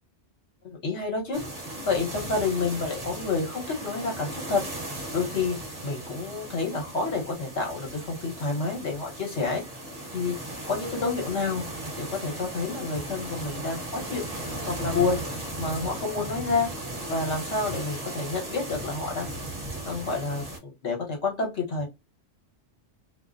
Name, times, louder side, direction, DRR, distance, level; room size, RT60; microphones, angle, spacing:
voice 1, 0.6-1.4 1.8-4.6 5.1-5.6 5.8-9.6 10.1-10.3 10.7-11.6 12.0-14.3 14.7-15.2 15.6-16.7 17.1-19.3 19.9-21.9, left 4 dB, 70° left, 0 dB, 1.2 m, -29 dB
sound 1, 1.3-20.6, right 1 dB, 35° right, 0.9 m, -37 dB
2.5 x 2.1 x 2.4 m, 0.24 s
omnidirectional pair, 1.2 m